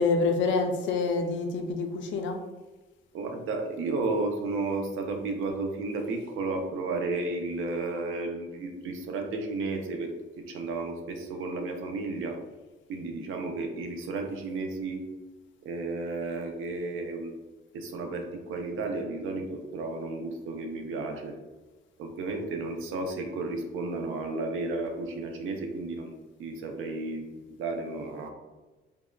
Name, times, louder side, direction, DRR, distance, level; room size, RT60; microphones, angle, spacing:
voice 1, 0.0-2.4, left 4 dB, 70° left, 5 dB, 0.4 m, -27 dB
voice 2, 3.1-12.4 12.9-15.1 15.6-17.3 17.7-21.3 22.0-28.3, right 3 dB, 85° right, 4 dB, 0.5 m, -33 dB
3.5 x 2.1 x 2.2 m, 1.2 s
cardioid pair, 170°, 20 cm